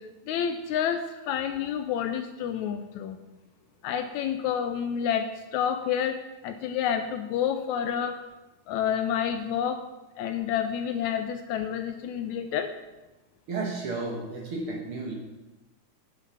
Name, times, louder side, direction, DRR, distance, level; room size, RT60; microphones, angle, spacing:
voice 1, 0.0-3.2 3.8-8.2 8.7-9.8 10.2-12.7, left 8 dB, 80° left, 8 dB, 1.8 m, -29 dB
voice 2, 13.5-15.1, right 3 dB, 55° right, -1 dB, 1.9 m, -32 dB
9.5 x 6.8 x 5.7 m, 1.1 s
omnidirectional pair, 3.6 m